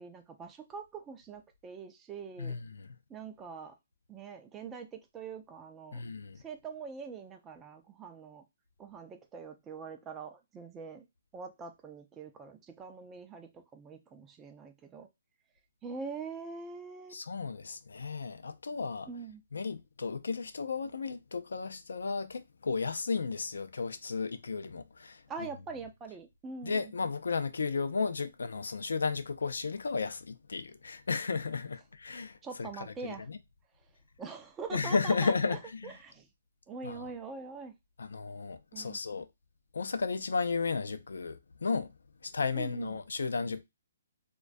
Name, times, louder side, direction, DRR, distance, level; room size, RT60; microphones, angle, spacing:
voice 1, 0.0-2.6 3.1-3.8 4.1-6.0 6.4-8.4 8.8-11.1 11.3-15.1 15.8-17.2 19.1-19.4 25.3-26.9 32.4-33.3 34.2-36.3 36.7-37.7 38.7-39.0 42.5-43.0, right 5 dB, 10° right, 0.3 m, -44 dB
voice 2, 2.4-2.9 5.9-6.4 17.1-19.1 19.5-25.2 26.6-33.4 34.7-35.9 36.8-37.1 38.0-39.3 39.7-41.9 42.2-43.6, left 4 dB, 85° left, 0.4 m, -34 dB
2.2 x 2.1 x 2.5 m
hypercardioid pair, 165°, 0 cm